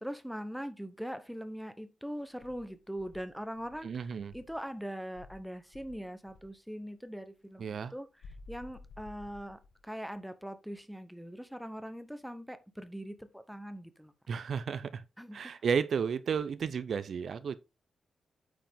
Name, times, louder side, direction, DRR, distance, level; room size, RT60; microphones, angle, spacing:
voice 1, 0.0-14.1 15.2-15.6, equal, ahead, 0.7 m, -42 dB
Insect, 2.4-4.7 5.1-6.6 8.2-9.9, left 3 dB, 65° left, 1.1 m, -53 dB
voice 2, 3.8-4.3 7.6-7.9 14.3-15.0 15.3-17.6, right 6 dB, 60° right, 0.5 m, -33 dB
8.9 x 5.0 x 3.5 m
wide cardioid pair, 135°, 0 cm